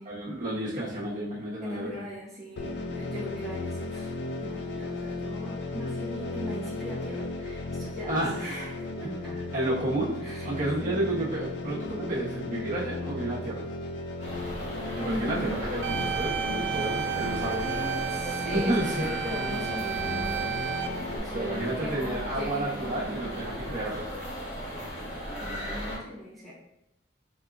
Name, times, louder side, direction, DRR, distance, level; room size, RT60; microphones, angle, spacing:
voice 1, 0.0-2.0 8.1-8.7 9.0-10.2 10.4-13.7 15.0-17.6 18.5-19.1 21.3-24.1, right 1 dB, 45° right, -7 dB, 1.2 m, -31 dB
voice 2, 1.6-4.1 4.4-9.3 10.2-10.5 10.8-11.0 15.0-15.6 17.6-20.5 21.1-23.7 25.4-26.5, equal, ahead, -8 dB, 0.9 m, -39 dB
sound 1, 2.6-21.2, left 2 dB, 65° left, 0.4 m, -35 dB
sound 2, 14.2-26.0, equal, 35° left, 1.3 m, -37 dB
sound 3, 15.8-20.9, right 10 dB, 80° right, 0.4 m, -32 dB
4.3 x 3.7 x 2.4 m, 0.85 s
head